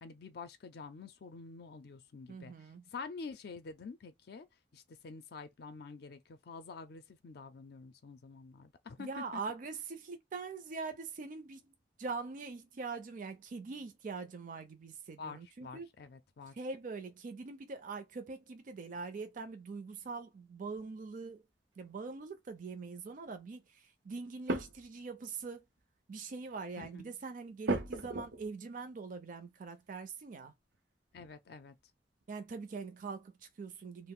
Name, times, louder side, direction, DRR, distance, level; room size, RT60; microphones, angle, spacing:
voice 1, 0.0-2.5 2.9-4.5 4.7-9.1 15.2-16.5 26.8-27.1 31.1-31.7, left 4 dB, 65° left, 0.4 m, -48 dB
voice 2, 2.3-2.8 9.0-11.7 12.0-15.9 16.5-21.4 21.8-25.6 26.1-30.5 32.3-34.1, right 4 dB, 50° right, 0.5 m, -43 dB
sound 1, 20.7-20.8 21.8-22.2 24.5-25.0 25.4-25.5 25.8-25.9 26.4-26.6 27.7-28.6 30.7-30.8 31.2-31.8 32.2-32.3, right 2 dB, 85° right, 0.7 m, -37 dB
2.4 x 2.0 x 3.6 m
head